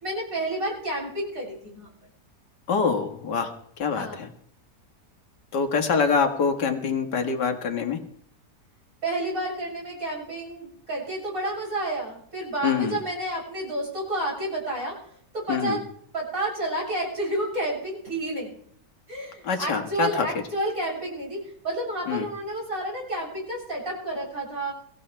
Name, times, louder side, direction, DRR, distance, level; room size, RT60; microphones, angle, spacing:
voice 1, 0.0-1.9 3.9-4.3 9.0-15.0 15.3-15.9 16.1-18.5 19.1-24.7, right 1 dB, 50° right, -4 dB, 8.2 m, -30 dB
voice 2, 2.7-3.5 3.8-4.3 5.5-8.0 12.6-13.0 15.5-15.8 19.4-20.3 22.1-22.3, left 5 dB, 80° left, 5 dB, 2.2 m, -25 dB
23.5 x 15.0 x 3.3 m, 0.64 s
omnidirectional pair, 1.8 m